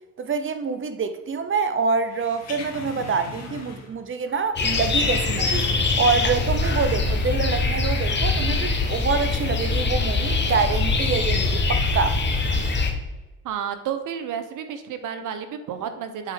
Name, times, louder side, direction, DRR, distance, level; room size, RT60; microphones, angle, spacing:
voice 1, 0.2-5.6 6.0-12.2, right 5 dB, 35° right, 0.7 m, -26 dB
sound 1, 2.1-4.0 4.3-6.3 6.6-6.7, left 3 dB, 50° left, 2.0 m, -39 dB
sound 2, 4.6-12.9, left 3 dB, 30° left, 1.2 m, -23 dB
voice 2, 13.4-16.3, right 8 dB, 65° right, 1.0 m, -31 dB
8.1 x 4.6 x 3.7 m
supercardioid pair, 80°, 34 cm